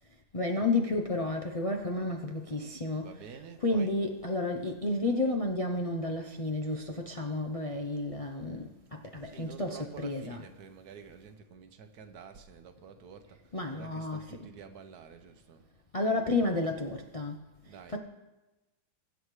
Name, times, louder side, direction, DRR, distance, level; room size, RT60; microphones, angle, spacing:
voice 1, 0.3-10.5 13.5-14.5 15.9-17.4 17.9-18.0, left 2 dB, 40° left, 0.5 m, -31 dB
voice 2, 3.0-3.9 9.2-15.7 17.7-18.0, right 6 dB, 70° right, 1.4 m, -49 dB
23.5 x 8.3 x 3.2 m
omnidirectional pair, 1.7 m